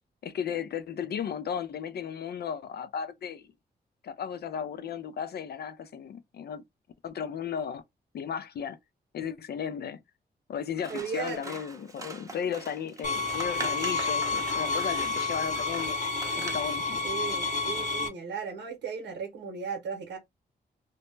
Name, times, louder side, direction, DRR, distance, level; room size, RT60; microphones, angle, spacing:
voice 1, 0.2-3.5 4.0-6.6 7.0-7.8 8.1-8.8 9.1-10.0 10.5-16.0 16.4-17.0, left 8 dB, 60° left, 0.4 m, -35 dB
Scissors, 10.7-16.8, right 3 dB, 20° right, 0.7 m, -42 dB
voice 2, 10.9-11.6 17.0-20.2, right 6 dB, 85° right, 0.7 m, -36 dB
sound 1, 13.0-18.1, left 3 dB, 45° left, 0.8 m, -30 dB
2.1 x 2.0 x 3.1 m
cardioid pair, 70°, 18 cm